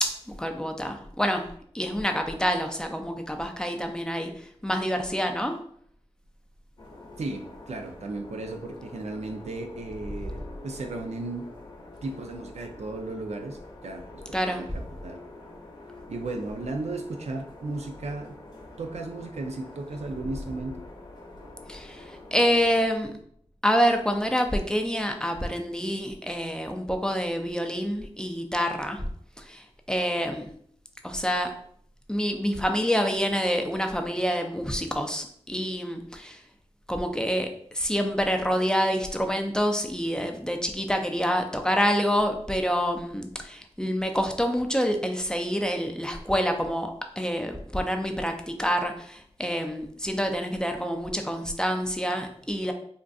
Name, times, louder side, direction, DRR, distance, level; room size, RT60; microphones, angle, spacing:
voice 1, 0.0-1.5 1.7-5.6 14.3-14.7 21.7-23.1 23.6-29.0 29.4-30.5 31.0-31.5 32.1-36.4 36.9-46.9 47.2-52.7, equal, 5° left, 4 dB, 0.4 m, -27 dB
sound 1, 6.8-22.8, left 2 dB, 45° left, 0.8 m, -46 dB
voice 2, 7.2-11.4 12.0-15.2 16.1-18.4 18.8-20.8, right 2 dB, 80° right, 4 dB, 0.4 m, -35 dB
3.6 x 2.5 x 2.3 m, 0.63 s
wide cardioid pair, 65°, 11 cm